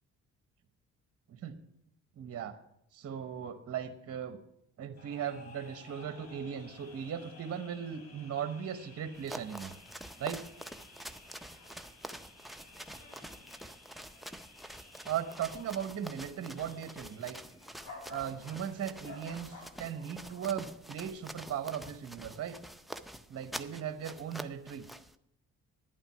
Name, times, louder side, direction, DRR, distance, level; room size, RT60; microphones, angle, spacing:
voice 1, 2.2-2.6 2.9-4.4 4.8-9.7 10.2-10.4 15.1-17.4 18.1-22.6 23.3-24.9, right 8 dB, 50° right, 8 dB, 1.0 m, -38 dB
sound 1, 5.0-20.7, left 3 dB, 60° left, 3.1 m, -54 dB
sound 2, 9.1-25.1, right 1 dB, ahead, 0.5 m, -47 dB
11.5 x 9.0 x 5.6 m, 0.76 s
cardioid pair, 90°, 30 cm